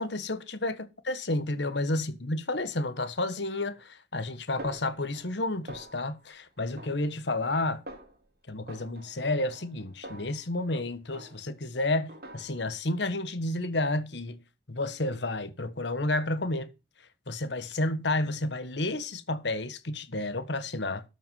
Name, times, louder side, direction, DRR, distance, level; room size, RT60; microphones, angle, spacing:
voice 1, 0.0-7.8 8.5-14.4 14.7-16.7 17.3-21.0, left 2 dB, 70° left, 1.4 m, -31 dB
Snare drum, 4.6-5.4 5.7-6.3 6.8-7.6 7.9-8.3 8.7-10.8 11.1-11.7 12.1-12.8, right 1 dB, 55° right, 2.0 m, -47 dB
13.0 x 5.8 x 5.6 m
head